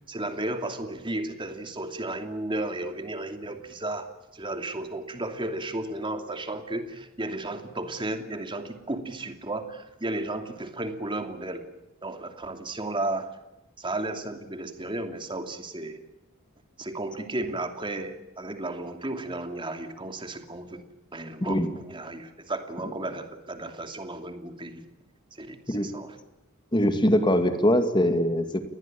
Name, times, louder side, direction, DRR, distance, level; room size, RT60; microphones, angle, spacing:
voice 1, 0.1-11.7 12.0-13.3 13.8-16.0 16.8-20.9 21.1-24.9 25.3-26.2, right 2 dB, 25° right, 6 dB, 2.7 m, -34 dB
voice 2, 26.7-28.6, equal, 20° left, 8 dB, 2.4 m, -22 dB
29.5 x 20.5 x 8.8 m, 0.92 s
head